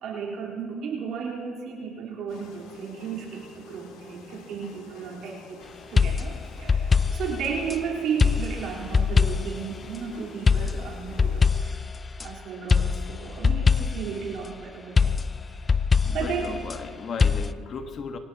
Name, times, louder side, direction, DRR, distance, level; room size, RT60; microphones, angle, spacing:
voice 1, 0.0-5.6 5.9-11.8 12.2-15.1 15.5-15.8 16.1-16.6, right 6 dB, 65° right, 4.1 m, -34 dB
sound 1, 2.3-11.5, left 4 dB, 85° left, 2.3 m, -48 dB
sound 2, 6.0-7.8 8.2-9.7 10.5-12.3 12.7-14.2 15.0-16.8 17.2-17.5, left 5 dB, 25° left, 0.4 m, -23 dB
voice 2, 16.0-18.2, left 5 dB, 45° left, 1.4 m, -36 dB
23.5 x 18.0 x 3.0 m
cardioid pair, 105°, 0 cm